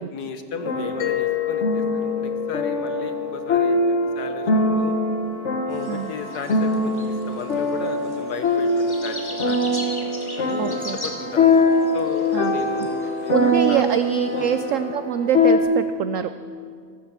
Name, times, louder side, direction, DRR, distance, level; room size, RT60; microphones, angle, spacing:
voice 1, 0.0-4.9 5.6-9.8 10.4-13.9 14.4-14.5, left 5 dB, 65° left, 8 dB, 1.5 m, -35 dB
sound 1, 0.6-15.6, left 2 dB, 45° left, 1.4 m, -23 dB
Mallet percussion, 1.0-5.6, left 13 dB, 85° left, 1.5 m, -30 dB
sound 2, 5.7-14.6, left 1 dB, 15° left, 1.6 m, -40 dB
voice 2, 10.6-11.0 12.3-12.9 13.3-16.4, right 9 dB, 80° right, 11 dB, 0.7 m, -25 dB
14.5 x 13.0 x 7.3 m, 2.2 s
omnidirectional pair, 1.9 m